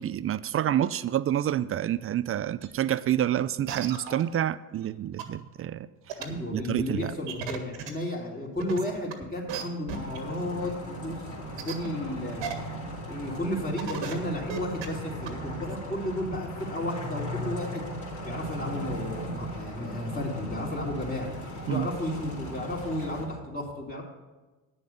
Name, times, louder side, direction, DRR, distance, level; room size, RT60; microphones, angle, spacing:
voice 1, 0.0-5.9 6.5-7.1 21.7-21.9, right 11 dB, 30° right, 17 dB, 0.4 m, -28 dB
sound 1, 2.6-2.7 3.2-3.3 3.7-4.2 4.8-4.9 5.2-5.3 6.1-6.2 7.3-7.9 8.6-9.1 9.5-9.6 9.9-10.2 10.6-10.7 11.6-11.9 12.4-12.5 12.9-13.0 13.5-13.6 13.8-14.1 14.4-14.9 15.3-15.4, right 8 dB, 70° right, 1.7 m, -34 dB
voice 2, 6.2-10.7 11.0-11.3 11.6-12.4 12.8-17.8 18.2-21.4 21.7-24.0, left 1 dB, 20° left, -1 dB, 3.3 m, -33 dB
sound 2, 9.9-23.3, equal, 40° left, 3.6 m, -37 dB
9.7 x 7.0 x 6.6 m, 1.2 s
hypercardioid pair, 70°, 47 cm